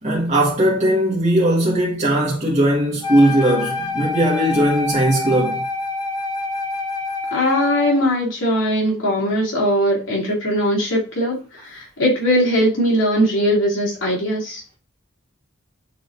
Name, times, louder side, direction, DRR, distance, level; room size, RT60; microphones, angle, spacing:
voice 1, 0.0-5.6, right 1 dB, 35° right, 1.6 m, -18 dB
Wind instrument woodwind instrument, 3.0-8.1, left 2 dB, 20° left, 1.0 m, -26 dB
voice 2, 7.3-14.6, equal, 65° left, 2.7 m, -20 dB
9.4 x 3.8 x 2.6 m
head